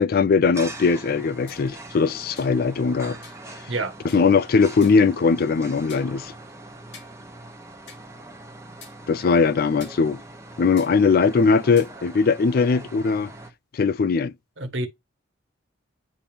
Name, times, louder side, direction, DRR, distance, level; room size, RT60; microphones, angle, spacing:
voice 1, 0.0-3.2 4.1-6.3 9.1-10.2 10.6-13.3 13.7-14.3, left 5 dB, 50° left, 0.4 m, -20 dB
sound 1, 0.5-13.5, right 2 dB, 15° right, 1.1 m, -42 dB
sound 2, 1.5-1.7 2.4-2.6 3.2-3.4 4.1-4.3 4.8-5.1 5.9-6.1 6.9-7.1 7.9-8.0 8.8-8.9 9.8-10.0 10.8-10.9 11.8-11.9, left 5 dB, 70° left, 2.3 m, -46 dB
voice 2, 3.7-3.9 14.6-14.9, right 2 dB, 75° right, 1.4 m, -27 dB
9.9 x 3.5 x 2.8 m
head